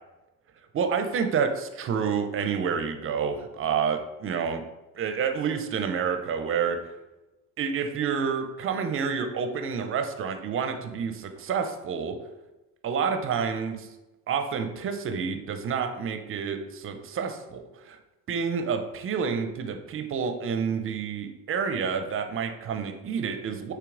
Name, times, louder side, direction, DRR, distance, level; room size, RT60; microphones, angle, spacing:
voice 1, 0.7-4.6 5.0-6.8 7.6-12.2 12.8-13.9 14.3-18.0 18.3-23.7, right 6 dB, 30° right, 6 dB, 0.5 m, -29 dB
6.9 x 2.8 x 2.5 m, 1.0 s
hypercardioid pair, 65°, 47 cm